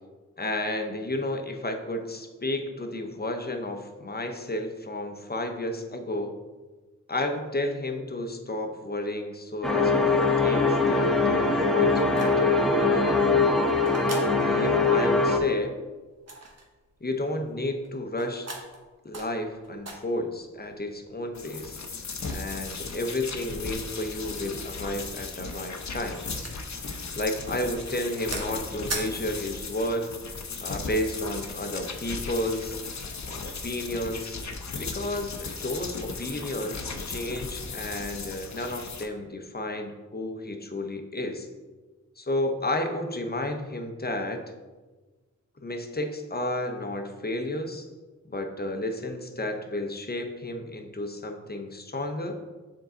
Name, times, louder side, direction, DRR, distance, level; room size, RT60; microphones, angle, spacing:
voice 1, 0.4-6.4 7.1-13.4 14.4-15.7 17.0-18.5 19.0-21.8 22.3-26.2 27.2-30.1 30.6-32.8 33.3-34.4 34.8-41.5 42.2-44.4 45.6-47.9 48.3-52.4, left 1 dB, 30° left, 5 dB, 0.9 m, -32 dB
sound 1, 9.6-15.4, left 3 dB, ahead, 0.9 m, -22 dB
sound 2, 10.6-29.9, right 2 dB, 55° right, 1.2 m, -43 dB
sound 3, 21.3-39.1, left 4 dB, 65° left, 0.8 m, -36 dB
6.9 x 3.8 x 3.8 m, 1.3 s
cardioid pair, 45°, 31 cm